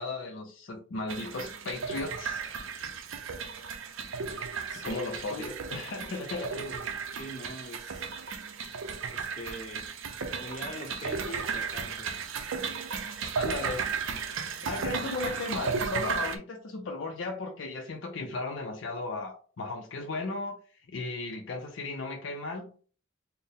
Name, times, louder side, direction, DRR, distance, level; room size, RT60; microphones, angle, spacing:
voice 1, 0.0-2.8 4.7-6.6 13.3-13.8 14.5-22.7, left 3 dB, 55° left, 0.4 m, -36 dB
sound 1, 1.1-16.4, right 5 dB, 65° right, 0.5 m, -35 dB
voice 2, 4.7-5.6 6.6-6.8 7.1-8.1 9.1-9.9 10.4-12.2, equal, 35° left, 0.8 m, -42 dB
4.2 x 2.0 x 3.4 m
head